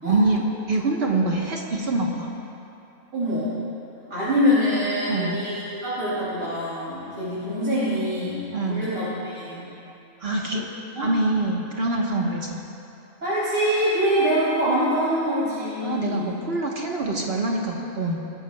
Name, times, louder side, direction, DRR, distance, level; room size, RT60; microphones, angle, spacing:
voice 1, 0.0-2.3 5.1-5.4 8.5-8.9 10.2-10.7 11.0-12.6 15.8-18.2, right 2 dB, 50° right, -2 dB, 1.3 m, -25 dB
voice 2, 3.1-3.5 4.1-5.5 5.8-8.4 8.7-9.7 10.9-11.1 13.2-16.3, equal, 70° right, -11 dB, 3.5 m, -24 dB
21.0 x 14.5 x 2.3 m, 2.8 s
omnidirectional pair, 1.5 m